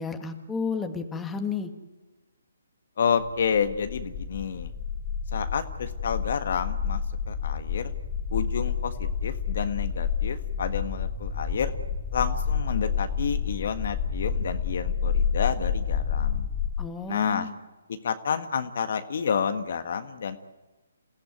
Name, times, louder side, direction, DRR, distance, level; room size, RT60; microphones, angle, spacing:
voice 1, 0.0-1.7 16.8-17.5, left 5 dB, 10° left, 5 dB, 1.9 m, -32 dB
voice 2, 3.0-4.7 5.3-7.9 8.3-11.7 12.1-16.5 17.1-17.5 17.9-20.4, left 6 dB, 55° left, 8 dB, 1.6 m, -29 dB
sound 1, 3.4-16.7, left 7 dB, 25° left, 3.3 m, -29 dB
28.0 x 16.0 x 9.5 m, 1.2 s
figure-of-eight pair, 140°, 0 cm